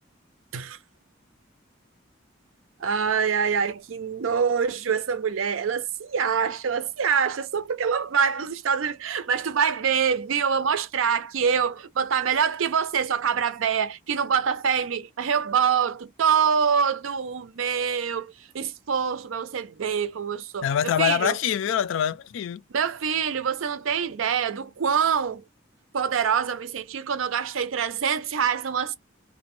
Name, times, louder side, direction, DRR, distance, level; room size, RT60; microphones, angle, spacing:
voice 1, 2.8-21.4 22.7-25.4 25.9-29.0, right 7 dB, 85° right, 0.5 m, -25 dB
voice 2, 20.6-22.6, left 9 dB, 70° left, 0.3 m, -24 dB
2.5 x 2.1 x 3.0 m
head